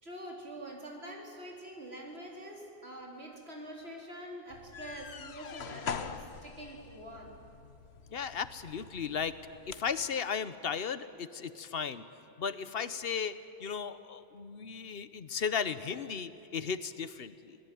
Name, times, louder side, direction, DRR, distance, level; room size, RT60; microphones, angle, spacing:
voice 1, 0.0-7.4, right 1 dB, 80° right, -1 dB, 4.1 m, -45 dB
sound 1, 4.5-10.0, left 6 dB, 85° left, 1.2 m, -44 dB
voice 2, 8.1-9.3 9.7-12.0 12.4-17.6, left 6 dB, 65° left, 13 dB, 1.1 m, -35 dB
26.0 x 19.0 x 9.2 m, 2.8 s
omnidirectional pair, 1.1 m